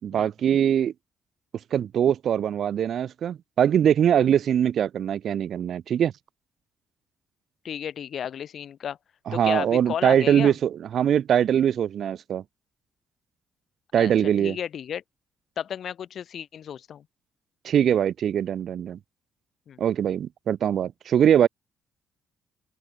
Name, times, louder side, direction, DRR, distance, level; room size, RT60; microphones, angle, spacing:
voice 1, 0.0-0.9 1.7-6.1 9.3-12.4 13.9-14.6 17.6-19.0 19.8-21.5, right 9 dB, 65° right, 3.1 m, -22 dB
voice 2, 7.6-9.0 9.3-10.6 14.0-14.1 14.4-15.0 15.6-17.0 19.7-19.8, left 9 dB, 60° left, 3.4 m, -33 dB
open air
cardioid pair, 90°, 0 cm